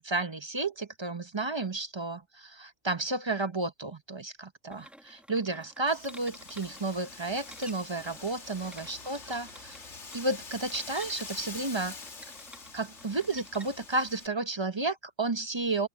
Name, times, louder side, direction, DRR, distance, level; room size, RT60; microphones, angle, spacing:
voice 1, 0.0-9.8 10.1-12.0 12.7-15.9, right 2 dB, 25° right, 0.8 m, -32 dB
sound 1, 4.7-14.2, equal, ahead, 1.9 m, -52 dB
Wind, 5.9-14.3, left 4 dB, 85° left, 2.3 m, -45 dB
open air
omnidirectional pair, 1.2 m